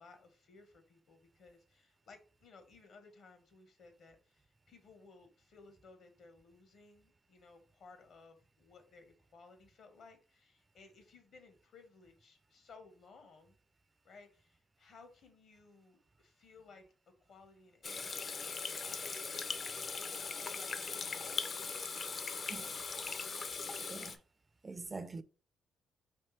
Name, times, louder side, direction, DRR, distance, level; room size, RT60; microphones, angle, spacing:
voice 1, 0.0-13.6 14.0-19.1 20.0-21.7, left 4 dB, 65° left, 1.1 m, -59 dB
Water tap faucet / Sink (filling or washing), 17.8-24.2, left 4 dB, 45° left, 0.4 m, -40 dB
voice 2, 23.8-24.2 24.6-25.2, right 3 dB, 25° right, 0.3 m, -45 dB
4.4 x 3.0 x 3.2 m
cardioid pair, 90°, 0 cm